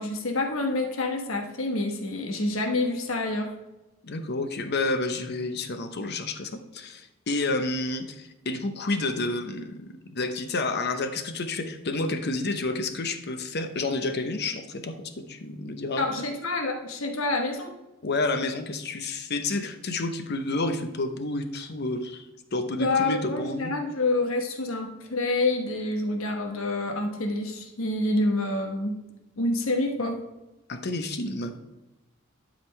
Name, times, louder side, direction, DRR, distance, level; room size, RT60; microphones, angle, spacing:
voice 1, 0.0-3.5 16.0-17.7 22.8-28.9 29.4-30.2, left 2 dB, 75° left, 4 dB, 1.1 m, -27 dB
voice 2, 4.0-16.1 18.0-22.3 22.5-23.7 30.7-31.5, left 2 dB, 55° left, 8 dB, 0.8 m, -30 dB
12.0 x 5.1 x 3.2 m, 1.0 s
head